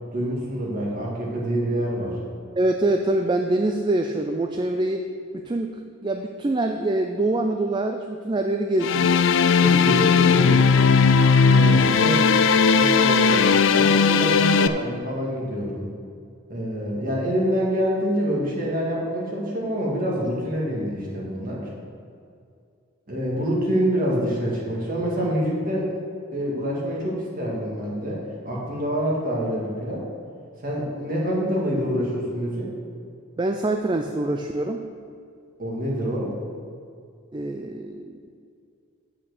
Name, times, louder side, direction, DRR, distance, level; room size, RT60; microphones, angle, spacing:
voice 1, 0.1-2.2 9.5-10.6 11.4-12.3 12.7-15.9 16.5-21.7 23.1-26.0 26.3-30.1 30.6-32.7 35.6-36.3, equal, 40° right, -3 dB, 2.0 m, -26 dB
voice 2, 2.6-5.0 5.3-9.1 33.4-34.9 37.3-38.2, right 2 dB, 20° right, 4 dB, 0.3 m, -25 dB
sound 1, 8.8-14.7, left 5 dB, 60° left, 0.4 m, -17 dB
8.5 x 5.9 x 6.6 m, 2.4 s
head